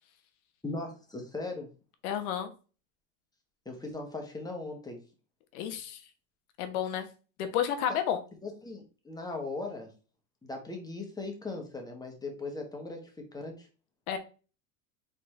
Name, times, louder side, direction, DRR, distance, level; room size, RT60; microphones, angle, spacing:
voice 1, 0.6-1.7 3.6-5.0 7.9-8.0 8.4-9.9 10.4-13.7, left 2 dB, 10° left, 2 dB, 1.2 m, -39 dB
voice 2, 2.0-2.5 5.5-6.0 6.6-7.1 7.4-8.2 14.1-14.2, left 9 dB, 85° left, 8 dB, 1.1 m, -31 dB
4.2 x 3.9 x 3.2 m, 0.34 s
supercardioid pair, 125°, 42 cm